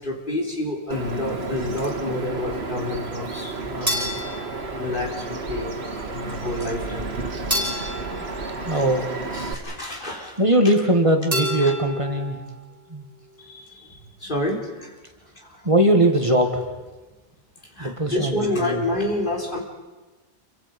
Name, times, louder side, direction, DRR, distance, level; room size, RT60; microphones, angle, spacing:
voice 1, 0.0-4.1 4.8-5.8 6.0-7.1 9.3-10.4 11.6-11.7 13.4-15.0 15.4-15.7 17.6-19.6, left 1 dB, 55° left, 0 dB, 3.8 m, -29 dB
Bird vocalization bird call bird song, 0.9-9.5, right 3 dB, 85° right, 1.9 m, -32 dB
sound 1, 3.9-5.4 7.5-9.3 11.3-12.4, equal, 15° right, 6.7 m, -30 dB
voice 2, 8.6-9.1 10.4-12.4 12.9-13.1 15.6-16.7 17.8-18.8, right 1 dB, 30° right, 4 dB, 1.9 m, -20 dB
28.5 x 24.0 x 5.3 m, 1.2 s
omnidirectional pair, 1.0 m